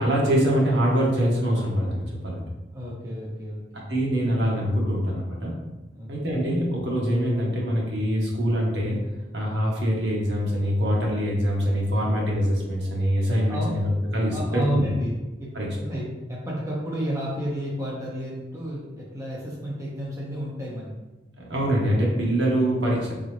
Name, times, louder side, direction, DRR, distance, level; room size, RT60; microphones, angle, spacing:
voice 1, 0.0-2.4 3.7-5.5 6.1-9.0 9.3-14.8 15.5-15.7 21.4-23.1, equal, 65° right, -3 dB, 1.2 m, -24 dB
voice 2, 2.7-4.0 5.9-6.1 13.5-13.7 14.3-20.9, equal, 15° right, -5 dB, 0.7 m, -31 dB
3.9 x 3.9 x 3.2 m, 1.1 s
head